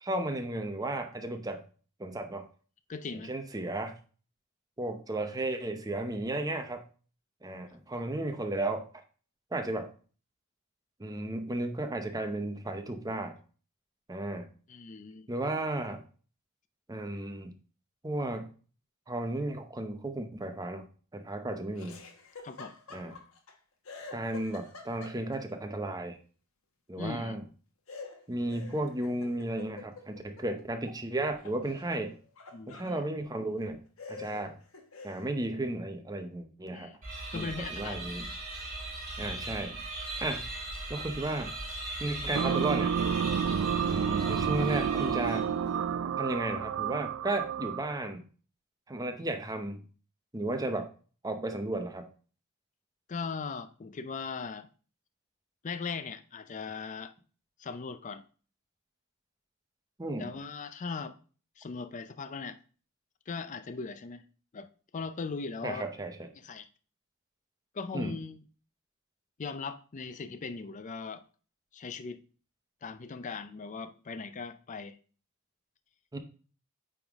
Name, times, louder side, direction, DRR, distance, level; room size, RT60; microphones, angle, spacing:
voice 1, 0.0-1.6 2.0-2.4 3.3-4.0 4.8-6.8 7.4-8.9 9.5-9.9 11.0-13.4 14.1-14.5 15.3-16.0 16.9-17.5 18.0-18.5 19.1-20.8 21.1-22.0 22.9-23.2 24.1-26.2 26.9-27.4 28.3-32.2 32.7-33.8 34.1-34.6 35.0-36.9 37.3-38.3 39.2-39.8 40.2-40.4 40.9-41.6 42.0-43.1 43.8-45.5 46.2-48.2 48.9-49.8 50.3-50.9 51.2-52.1 60.0-60.3 65.6-66.3 67.9-68.2 76.1-76.2, right 2 dB, 15° right, 0.7 m, -34 dB
voice 2, 2.9-3.3 14.7-15.3 22.4-22.8 27.0-27.4 32.5-33.0 36.7-37.0 37.3-38.2 53.1-54.7 55.6-57.1 57.6-58.2 60.2-61.2 61.6-62.6 63.3-64.2 64.5-64.7 64.9-65.9 66.4-66.7 67.7-68.4 69.4-71.2 71.7-72.2 72.8-75.0, left 4 dB, 35° left, 0.4 m, -39 dB
Laughter, 21.7-23.5 23.8-25.5 27.9-31.0 31.3-33.0 33.6-33.7 34.0-35.3, left 3 dB, 70° left, 1.1 m, -47 dB
sound 1, 37.0-45.7, right 2 dB, 40° right, 3.0 m, -39 dB
sound 2, 42.3-48.0, right 7 dB, 65° right, 0.4 m, -30 dB
8.6 x 3.6 x 3.5 m
head